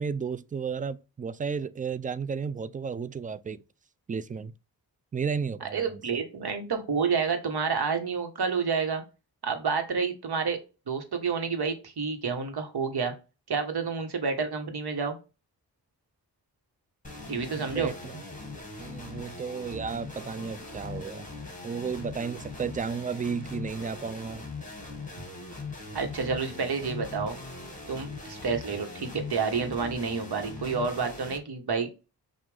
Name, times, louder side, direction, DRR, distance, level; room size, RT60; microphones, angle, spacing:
voice 1, 0.0-3.6 4.1-4.5 5.1-6.0 17.5-18.2 18.8-21.2 21.6-24.4, right 6 dB, 20° right, 0.4 m, -33 dB
voice 2, 5.6-9.0 9.4-10.6 10.9-13.1 13.5-15.2 17.3-17.9 25.9-27.4 27.9-31.9, right 5 dB, 55° right, 1.4 m, -29 dB
sound 1, 17.0-31.4, left 3 dB, 15° left, 1.7 m, -41 dB
5.8 x 2.6 x 3.4 m
supercardioid pair, 40°, 45 cm